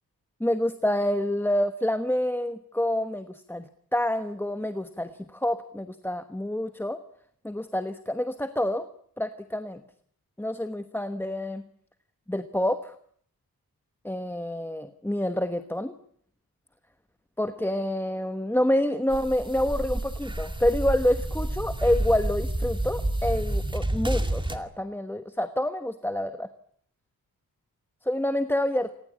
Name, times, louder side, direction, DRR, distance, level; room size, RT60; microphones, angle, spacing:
voice 1, 0.4-7.0 7.4-8.9 9.2-9.8 10.4-11.6 12.3-12.9 14.0-15.9 17.4-26.5 28.0-28.9, left 1 dB, 5° left, 9 dB, 1.1 m, -27 dB
sound 1, 19.1-24.6, right 1 dB, 15° right, 2.3 m, -29 dB
27.5 x 20.0 x 8.6 m, 0.62 s
wide cardioid pair, 130°, 37 cm